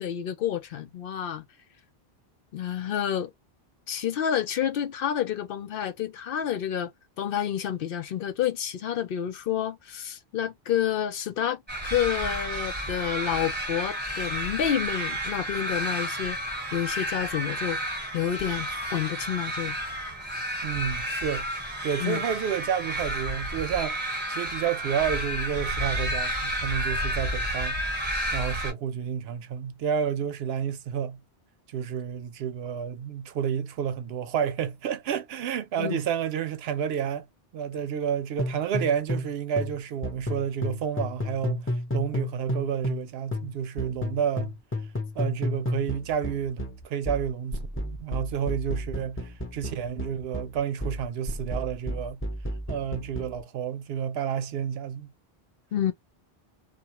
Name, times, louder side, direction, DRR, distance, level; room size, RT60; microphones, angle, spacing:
voice 1, 0.0-1.4 2.5-3.3 3.9-6.9 7.2-11.6 11.9-16.4 16.7-17.8 18.1-19.8 22.0-22.2 35.8-36.0 55.7-55.9, left 10 dB, 65° left, 0.7 m, -29 dB
sound 1, 11.7-28.7, right 1 dB, 10° right, 1.1 m, -31 dB
voice 2, 20.6-21.5 21.8-24.0 24.3-27.8 28.3-31.2 31.7-37.3 37.5-41.7 41.9-44.6 45.2-52.2 52.7-55.1, right 8 dB, 80° right, 0.8 m, -30 dB
sound 2, 38.4-39.3 39.6-43.1 43.3-53.4, left 1 dB, 15° left, 0.7 m, -32 dB
2.4 x 2.2 x 2.9 m
omnidirectional pair, 1.0 m